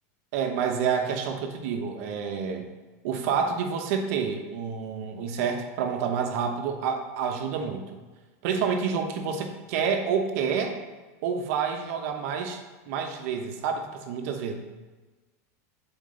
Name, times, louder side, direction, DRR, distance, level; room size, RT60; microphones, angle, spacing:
voice 1, 0.3-2.7 3.0-7.9 8.4-10.8 11.2-12.6 12.9-14.5, right 6 dB, 60° right, 4 dB, 1.0 m, -28 dB
7.4 x 4.5 x 3.8 m, 1.2 s
supercardioid pair, 145°, 9 cm